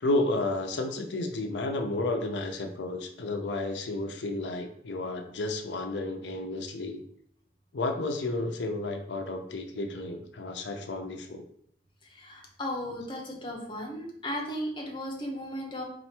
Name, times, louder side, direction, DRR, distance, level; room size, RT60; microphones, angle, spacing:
voice 1, 0.0-7.0 7.7-11.4, left 2 dB, 85° left, 5 dB, 0.6 m, -32 dB
voice 2, 12.0-15.8, equal, 25° left, 0 dB, 0.9 m, -36 dB
4.3 x 2.5 x 4.3 m, 0.67 s
head